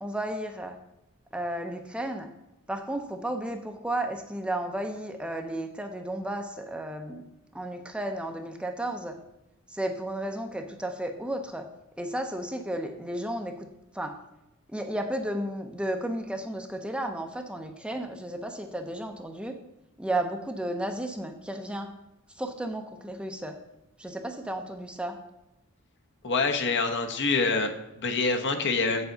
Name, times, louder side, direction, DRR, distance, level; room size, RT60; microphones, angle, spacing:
voice 1, 0.0-0.8 1.3-2.3 2.7-7.2 7.5-9.2 9.7-11.6 12.0-13.7 13.9-14.2 14.7-19.6 20.0-21.9 22.4-23.6 24.0-25.2, right 1 dB, 5° right, 5 dB, 0.6 m, -33 dB
voice 2, 26.2-29.1, left 4 dB, 55° left, 5 dB, 0.9 m, -26 dB
7.9 x 7.0 x 3.9 m, 0.94 s
head